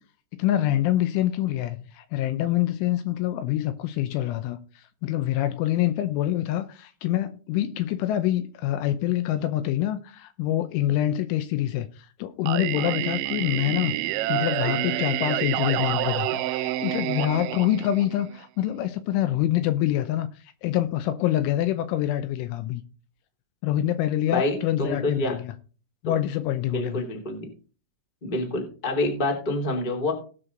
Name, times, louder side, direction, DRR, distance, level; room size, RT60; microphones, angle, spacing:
voice 1, 0.4-14.0 14.3-20.3 20.6-22.8 23.6-25.5 26.0-27.0, left 13 dB, 80° left, 2.9 m, -26 dB
Singing, 12.5-18.4, right 15 dB, 85° right, 3.2 m, -28 dB
voice 2, 24.3-25.3 26.6-27.5 28.2-30.1, left 2 dB, 30° left, 0.9 m, -27 dB
18.5 x 6.3 x 3.8 m
omnidirectional pair, 5.9 m